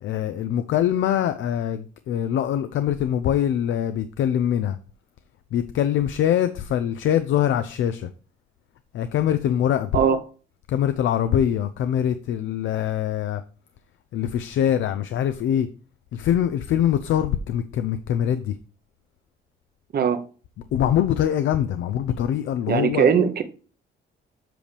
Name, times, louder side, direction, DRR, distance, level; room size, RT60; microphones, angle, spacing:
voice 1, 0.0-4.8 5.5-8.1 8.9-9.9 10.7-13.4 14.1-15.7 16.1-18.6 20.7-23.1, left 10 dB, 75° left, 0.5 m, -23 dB
voice 2, 22.7-23.4, right 7 dB, 50° right, 0.9 m, -19 dB
7.6 x 5.2 x 3.3 m
cardioid pair, 90°, 20 cm